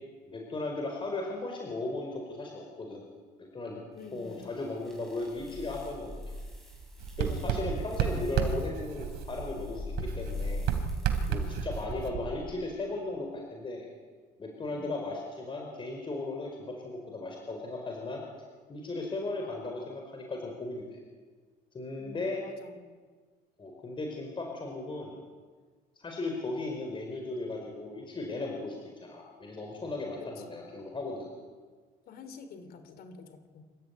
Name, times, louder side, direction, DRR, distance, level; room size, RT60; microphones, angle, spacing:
voice 1, 0.3-3.1 3.4-3.8 4.1-6.3 7.2-10.7 11.3-13.9 14.4-18.2 18.7-21.0 21.7-22.4 23.6-25.2 26.0-28.8 29.0-31.3, left 2 dB, 30° left, 1 dB, 4.6 m, -36 dB
voice 2, 3.9-4.6 7.4-7.8 14.7-14.9 22.0-22.8 30.2-30.7 32.1-33.6, left 4 dB, 65° left, 10 dB, 3.2 m, -48 dB
sound 1, 4.0-11.9, left 2 dB, ahead, 7.0 m, -42 dB
Writing, 7.0-9.6 10.0-12.7, right 8 dB, 85° right, 3.0 m, -32 dB
27.0 x 14.0 x 9.5 m, 1.5 s
cardioid pair, 110°, 17 cm